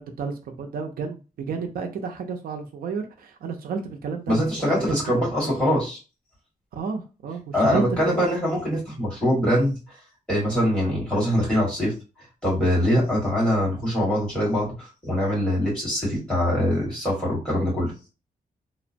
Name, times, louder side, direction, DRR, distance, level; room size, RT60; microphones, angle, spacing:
voice 1, 0.0-4.8 5.4-5.5 6.7-8.3, right 5 dB, 80° right, 4 dB, 0.5 m, -31 dB
voice 2, 4.3-6.0 7.5-9.7 10.3-11.9 12.4-17.9, equal, 5° left, -7 dB, 1.5 m, -23 dB
2.8 x 2.0 x 2.5 m, 0.31 s
wide cardioid pair, 170°, 15 cm